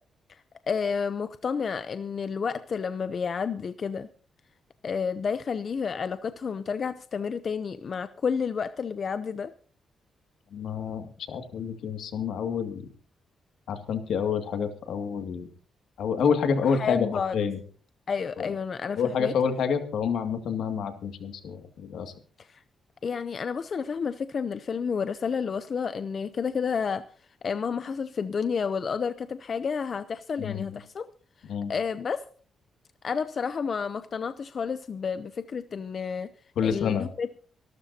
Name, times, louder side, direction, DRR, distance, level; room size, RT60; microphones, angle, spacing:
voice 1, 0.7-4.1 4.8-9.5 16.6-17.4 18.1-19.3 22.4-22.6 23.0-27.0 27.4-31.1 31.7-32.2 33.0-36.3 36.6-37.3, left 6 dB, 40° left, 11 dB, 0.6 m, -30 dB
voice 2, 10.5-12.9 13.7-15.5 16.0-17.6 18.4-18.5 19.0-22.1 30.4-30.8 31.5-31.7 36.6-37.1, left 6 dB, 75° left, 6 dB, 2.2 m, -28 dB
25.0 x 13.0 x 2.8 m, 0.42 s
cardioid pair, 135°, 0 cm